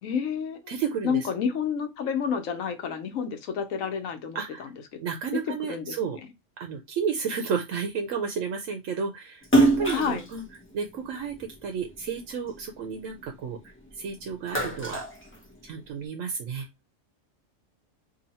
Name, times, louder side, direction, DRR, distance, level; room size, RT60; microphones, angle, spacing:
voice 1, 0.0-0.8 1.0-5.0 5.3-5.4 5.7-5.9 9.9-10.2, left 7 dB, 90° left, 1.1 m, -30 dB
voice 2, 0.7-1.3 4.3-4.7 5.0-6.2 6.6-10.4 10.7-13.6 14.0-15.0 15.6-16.7, right 6 dB, 85° right, 1.0 m, -32 dB
Splash splatter, 9.4-12.0 12.5-13.9 14.2-16.0, right 1 dB, 10° left, 0.7 m, -26 dB
2.8 x 2.7 x 4.0 m
omnidirectional pair, 1.3 m